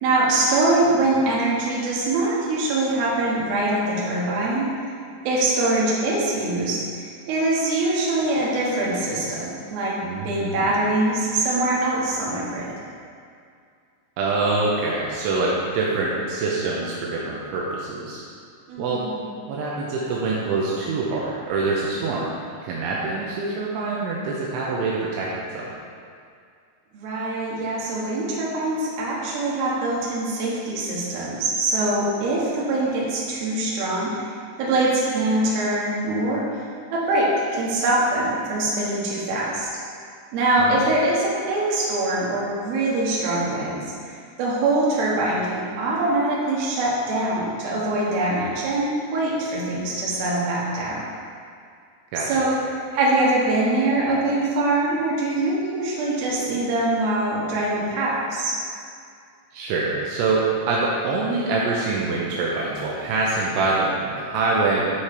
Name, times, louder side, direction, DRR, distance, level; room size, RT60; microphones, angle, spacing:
voice 1, 0.0-4.7 5.2-10.0 10.2-12.7 18.7-19.4 26.9-36.6 36.9-39.7 40.3-51.0 52.2-52.5 52.9-58.6, right 2 dB, 60° right, -6 dB, 2.8 m, -23 dB
voice 2, 10.0-10.8 14.2-18.2 18.8-19.0 19.5-22.3 22.6-25.7 40.7-40.8 52.1-52.5 59.5-64.9, right 3 dB, 80° right, -4 dB, 3.0 m, -25 dB
9.9 x 4.9 x 4.4 m, 2.3 s
omnidirectional pair, 5.8 m